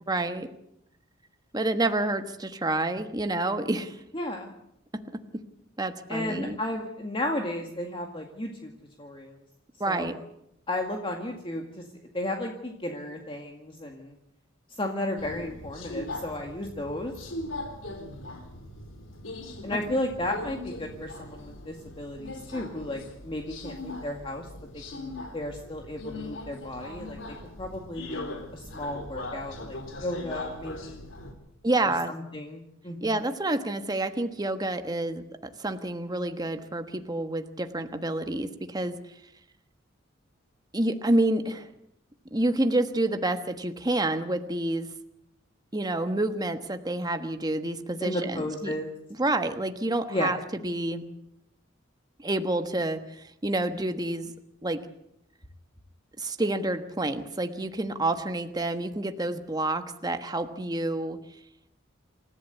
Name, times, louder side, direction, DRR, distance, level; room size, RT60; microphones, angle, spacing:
voice 1, 0.1-0.5 1.5-4.0 4.9-5.4 5.8-6.6 9.8-10.1 31.6-32.1 33.0-35.2 35.6-39.0 40.7-41.7 42.3-44.9 45.7-48.7 49.2-50.4 50.6-51.1 52.2-54.3 54.6-54.8 56.2-61.2, right 2 dB, 20° right, 8 dB, 1.3 m, -28 dB
voice 2, 4.1-4.5 6.1-8.7 9.0-9.3 9.9-10.1 10.7-11.8 12.1-14.1 14.8-17.1 19.6-24.5 24.7-31.1 32.3-33.1 48.0-48.9 50.1-50.3, left 1 dB, 25° left, 2 dB, 2.1 m, -34 dB
Subway metro underground, 15.2-31.3, left 2 dB, 75° left, 3.8 m, -40 dB
28.0 x 14.5 x 8.2 m, 0.77 s
head